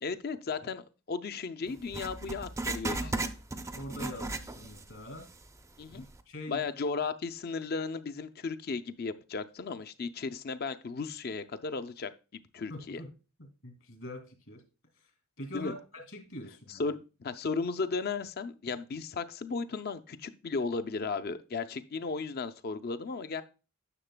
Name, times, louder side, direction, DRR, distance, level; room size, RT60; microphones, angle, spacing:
voice 1, 0.0-3.0 5.8-6.0 6.5-13.0 15.5-15.7 16.7-23.4, left 4 dB, 45° left, 11 dB, 0.5 m, -35 dB
Writing, 1.9-4.9 5.2-5.3 6.0-6.1, right 2 dB, 15° right, 0.4 m, -35 dB
voice 2, 2.9-3.3 3.6-5.3 5.9-6.7 12.7-13.1 13.4-14.6 14.9-15.1 15.4-15.8 16.1-16.9, left 1 dB, 65° left, 6 dB, 2.2 m, -44 dB
9.9 x 6.6 x 2.2 m, 0.32 s
head